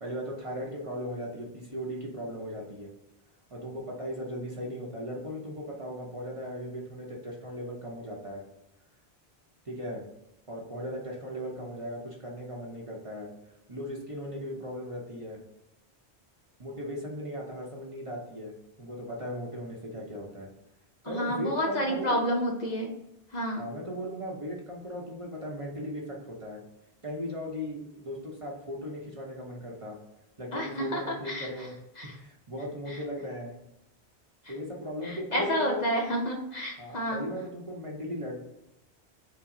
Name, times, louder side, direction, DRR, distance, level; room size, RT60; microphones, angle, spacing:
voice 1, 0.0-2.9 3.5-8.4 9.6-10.0 10.5-13.3 13.7-15.4 16.6-18.5 18.8-20.5 21.0-22.2 23.6-26.6 27.0-30.0 30.4-31.8 32.0-33.5 34.5-35.9 36.8-38.4, equal, 35° right, -2 dB, 0.7 m, -37 dB
voice 2, 21.1-22.9 23.3-23.6 30.5-31.0 31.3-31.5 32.0-32.1 35.0-37.2, equal, 45° left, 0 dB, 0.7 m, -30 dB
5.6 x 2.0 x 3.7 m, 0.88 s
omnidirectional pair, 1.1 m